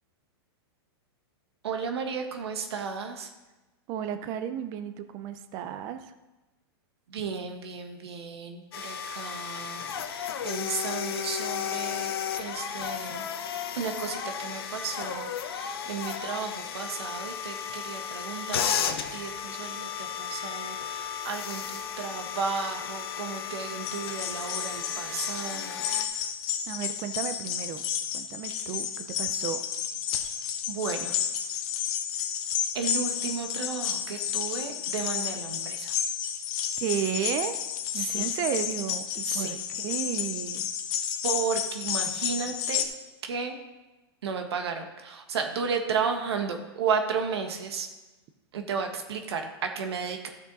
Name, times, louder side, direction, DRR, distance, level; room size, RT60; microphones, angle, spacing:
voice 1, 1.6-3.3 7.1-13.2 13.8-25.8 26.1-26.3 30.7-31.1 32.7-35.9 37.9-38.3 39.2-39.6 41.2-42.8 43.3-43.6 44.2-47.9 48.5-50.3, right 6 dB, 85° right, 4 dB, 1.5 m, -33 dB
voice 2, 3.9-6.0 26.7-27.8 28.1-29.6 36.8-37.6 37.9-40.7 42.5-42.6, right 9 dB, 25° right, 10 dB, 0.5 m, -33 dB
sound 1, 8.7-26.0, left 8 dB, 70° left, 1.0 m, -34 dB
sound 2, 23.8-42.8, left 9 dB, 30° left, 0.8 m, -31 dB
13.5 x 6.3 x 4.1 m, 1.1 s
supercardioid pair, 170°, 13 cm